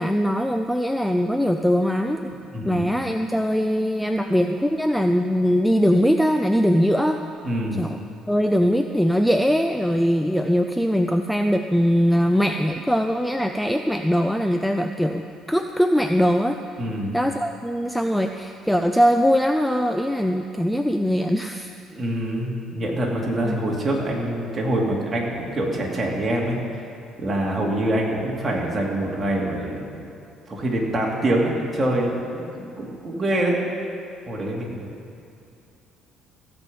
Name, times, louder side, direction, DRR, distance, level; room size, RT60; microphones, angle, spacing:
voice 1, 0.0-2.3 2.6-7.2 7.7-8.0 8.3-16.6 17.1-21.7 23.4-23.7, equal, ahead, 5 dB, 0.4 m, -21 dB
voice 2, 2.5-2.9 7.4-7.8 16.8-17.1 21.9-26.6 27.2-30.1 30.5-33.6 34.3-34.9, right 1 dB, 25° right, -2 dB, 2.6 m, -25 dB
16.0 x 5.4 x 7.7 m, 2.6 s
cardioid pair, 100°, 0 cm